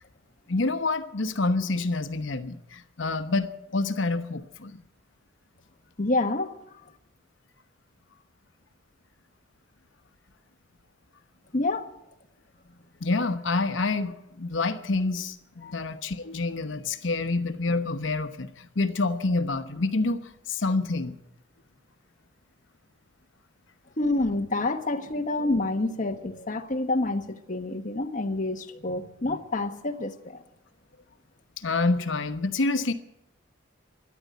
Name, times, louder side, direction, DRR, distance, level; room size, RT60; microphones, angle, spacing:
voice 1, 0.5-4.8 13.0-20.2 20.5-21.2 31.6-32.9, left 3 dB, 70° left, 9 dB, 1.0 m, -27 dB
voice 2, 6.0-6.5 11.5-11.9 15.6-15.8 24.0-30.4, left 2 dB, 40° left, 6 dB, 1.2 m, -28 dB
13.5 x 11.0 x 9.4 m, 0.89 s
head